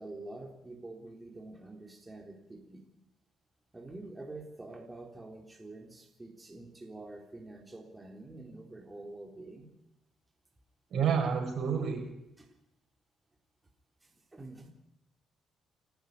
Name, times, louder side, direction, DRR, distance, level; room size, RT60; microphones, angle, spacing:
voice 1, 0.0-2.8 3.7-9.7 12.4-12.5 14.0-14.7, right 2 dB, 20° right, 1 dB, 3.8 m, -47 dB
voice 2, 10.9-12.0, right 7 dB, 65° right, 3 dB, 6.9 m, -29 dB
29.5 x 10.5 x 9.6 m, 0.87 s
cardioid pair, 90°, 0 cm